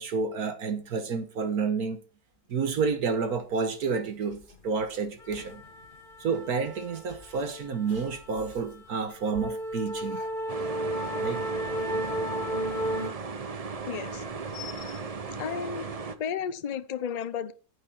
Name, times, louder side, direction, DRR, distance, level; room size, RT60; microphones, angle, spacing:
voice 1, 0.0-2.0 2.5-5.6 6.2-10.3 11.2-11.4, right 5 dB, 70° right, 1.6 m, -30 dB
sound 1, 4.3-4.5 4.8-13.1, right 1 dB, 30° left, 1.6 m, -34 dB
sound 2, 10.5-16.2, right 4 dB, 40° right, 0.5 m, -36 dB
voice 2, 13.9-14.2 14.5-15.9 16.2-17.5, left 7 dB, 60° left, 0.4 m, -34 dB
9.6 x 9.2 x 4.4 m
omnidirectional pair, 1.7 m